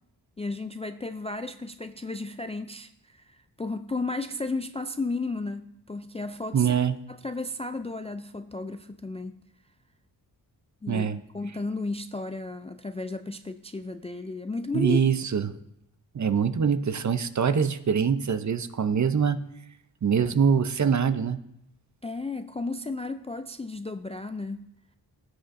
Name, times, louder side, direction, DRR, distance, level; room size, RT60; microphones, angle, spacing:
voice 1, 0.4-6.8 7.1-9.4 10.8-11.1 11.3-15.0 22.0-24.7, left 3 dB, 15° left, 0.3 m, -34 dB
voice 2, 6.5-6.9 10.9-11.2 14.7-15.6 16.1-19.4 20.0-21.4, right 7 dB, 40° right, 0.6 m, -24 dB
16.0 x 6.3 x 2.6 m
cardioid pair, 60°, 44 cm